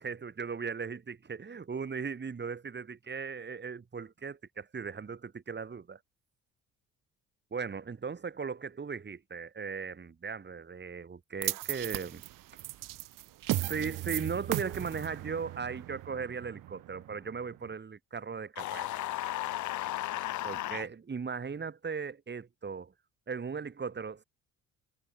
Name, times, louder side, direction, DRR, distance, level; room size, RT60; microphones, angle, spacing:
voice 1, 0.0-6.0 7.5-12.2 13.6-18.9 20.4-22.9 23.3-24.2, right 5 dB, 30° right, 2.3 m, -38 dB
sound 1, 11.4-17.7, right 16 dB, 60° right, 1.1 m, -37 dB
sound 2, 18.6-20.9, left 15 dB, 55° left, 0.8 m, -35 dB
hypercardioid pair, 60°, 36 cm